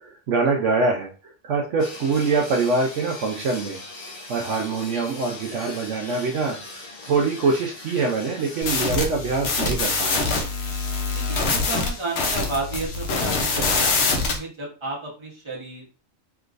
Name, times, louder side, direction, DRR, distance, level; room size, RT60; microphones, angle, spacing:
voice 1, 0.0-3.8 4.3-10.5, right 4 dB, 65° right, 1 dB, 0.9 m, -24 dB
sound 1, 1.8-8.9, left 2 dB, 40° left, 0.6 m, -40 dB
sound 2, 8.6-14.4, left 3 dB, 60° left, 0.9 m, -24 dB
voice 2, 11.1-16.0, right 3 dB, 25° right, -3 dB, 1.1 m, -32 dB
3.5 x 3.0 x 2.5 m, 0.35 s
omnidirectional pair, 1.4 m